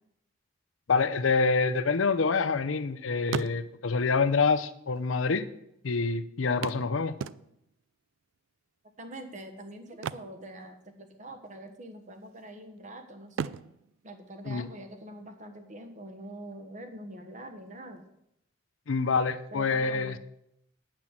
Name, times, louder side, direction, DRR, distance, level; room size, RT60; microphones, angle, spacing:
voice 1, 0.9-5.5 5.8-7.2 14.5-14.7 18.9-20.2, left 4 dB, 85° left, 13 dB, 0.6 m, -26 dB
sound 1, 1.6-2.9 3.2-4.0 5.0-5.1 5.3-5.4 6.6-7.8 9.9-11.2 11.4-11.7 12.2-12.8 13.3-15.0 17.0-17.1 17.6-17.7, right 7 dB, 75° right, 0.3 m, -38 dB
voice 2, 9.0-13.5 14.0-18.0 19.5-20.2, right 1 dB, 40° right, 6 dB, 1.2 m, -44 dB
9.1 x 6.0 x 7.4 m, 0.80 s
head